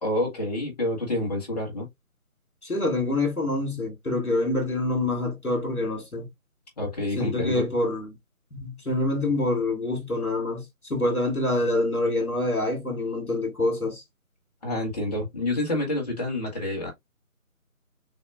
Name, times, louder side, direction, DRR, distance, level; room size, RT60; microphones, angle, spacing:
voice 1, 0.0-1.9 6.8-7.7 14.6-16.9, left 1 dB, 30° left, 1.7 m, -28 dB
voice 2, 2.6-6.3 7.2-8.2 8.5-14.0, left 2 dB, 75° left, 2.7 m, -26 dB
6.3 x 2.8 x 2.4 m
figure-of-eight pair, 155°, 43 cm